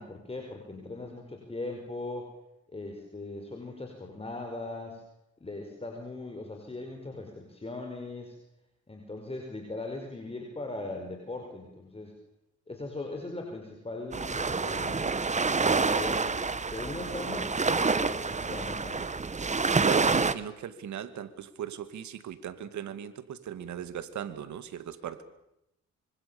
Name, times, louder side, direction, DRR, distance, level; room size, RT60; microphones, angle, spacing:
voice 1, 0.0-2.3 2.7-5.0 5.4-8.4 8.9-12.1 12.7-15.1 15.6-16.4 16.7-19.0, left 2 dB, 20° left, 2 dB, 5.2 m, -39 dB
sound 1, 14.1-20.3, right 4 dB, 25° right, 1.4 m, -27 dB
voice 2, 19.8-25.2, right 9 dB, 70° right, 12 dB, 2.3 m, -38 dB
25.5 x 24.5 x 7.1 m, 0.84 s
cardioid pair, 90°, 30 cm